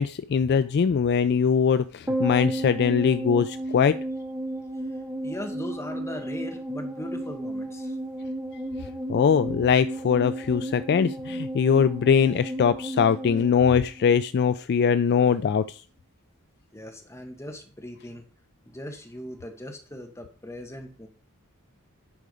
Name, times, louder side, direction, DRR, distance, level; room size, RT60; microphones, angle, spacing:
voice 1, 0.0-4.0 9.1-15.8, left 6 dB, 50° left, 13 dB, 0.3 m, -22 dB
sound 1, 2.1-14.6 14.8-14.9, right 1 dB, 10° right, 1.8 m, -33 dB
voice 2, 5.2-8.0 16.7-18.2 18.6-21.1, left 1 dB, 15° left, 3 dB, 1.7 m, -39 dB
10.5 x 4.9 x 5.0 m, 0.41 s
head